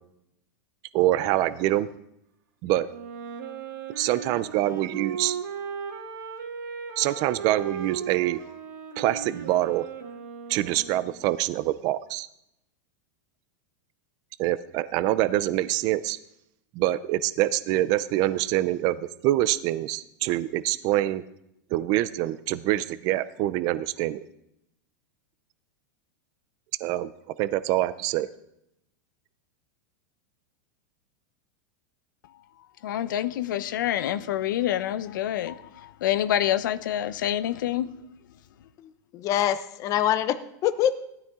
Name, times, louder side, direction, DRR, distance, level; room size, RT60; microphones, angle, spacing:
voice 1, 0.9-1.9 2.6-2.9 4.0-5.4 7.0-8.4 9.0-9.8 10.5-12.3 14.4-16.2 16.7-21.2 21.7-24.3 26.8-27.1 27.4-28.3, right 15 dB, 40° right, 0.5 m, -25 dB
Wind instrument woodwind instrument, 2.9-11.2, right 7 dB, 90° right, 2.9 m, -36 dB
voice 2, 32.8-37.9, left 12 dB, 80° left, 0.8 m, -27 dB
voice 3, 38.8-41.0, left 11 dB, 30° left, 0.9 m, -25 dB
18.0 x 12.5 x 3.7 m
supercardioid pair, 155°, 10 cm